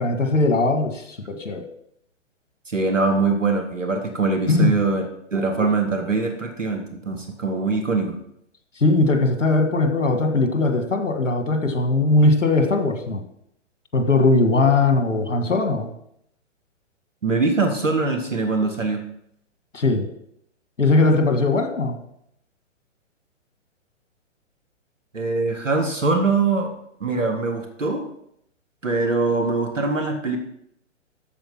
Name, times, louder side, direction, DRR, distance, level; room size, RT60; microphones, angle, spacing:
voice 1, 0.0-1.6 4.5-4.8 8.8-13.2 13.9-15.9 19.7-20.1 20.8-22.0, left 2 dB, 80° left, 6 dB, 1.8 m, -19 dB
voice 2, 2.7-5.0 5.3-8.2 17.2-19.0 25.1-26.7 27.0-28.1 28.8-30.4, right 3 dB, 90° right, 4 dB, 1.8 m, -22 dB
13.5 x 4.5 x 6.0 m, 0.75 s
figure-of-eight pair, 120°, 37 cm